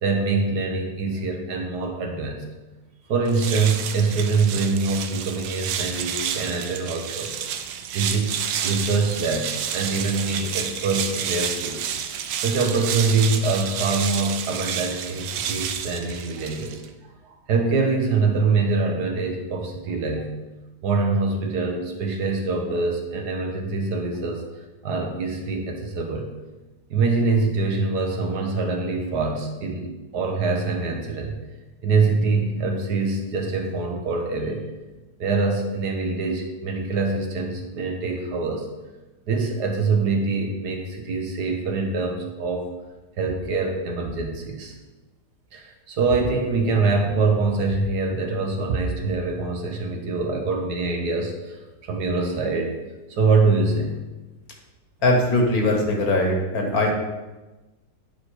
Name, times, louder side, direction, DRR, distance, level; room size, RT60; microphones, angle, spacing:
voice 1, 0.0-2.4 3.1-7.3 7.9-11.8 12.4-16.8 17.5-20.3 20.8-24.4 24.8-26.3 26.9-31.4 31.8-34.7 35.2-38.7 39.3-42.7 43.2-44.7 45.5-51.6 51.8-52.7 53.1-54.0, right 3 dB, 65° right, 3 dB, 1.5 m, -24 dB
sound 1, 3.2-16.9, right 8 dB, 90° right, 1.3 m, -30 dB
voice 2, 55.0-56.9, left 1 dB, 55° left, 1 dB, 1.6 m, -20 dB
9.0 x 4.5 x 4.7 m, 1.1 s
omnidirectional pair, 1.9 m